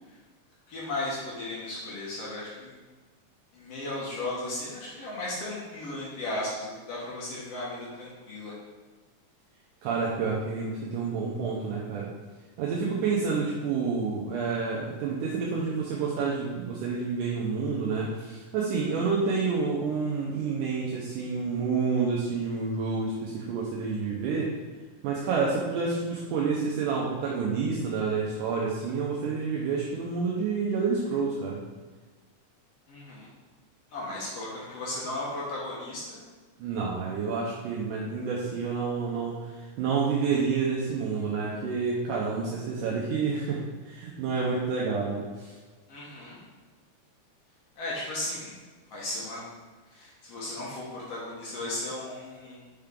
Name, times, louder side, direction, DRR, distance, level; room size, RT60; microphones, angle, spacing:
voice 1, 0.7-2.8 3.5-8.5 32.9-33.3 33.9-36.2 45.9-46.4 47.8-48.5 48.9-49.5 49.9-52.6, left 2 dB, 60° left, -6 dB, 1.9 m, -35 dB
voice 2, 9.8-12.1 12.6-24.5 25.0-31.6 36.6-45.6, right 5 dB, 80° right, -5 dB, 2.3 m, -29 dB
5.7 x 5.2 x 3.6 m, 1.3 s
omnidirectional pair, 3.8 m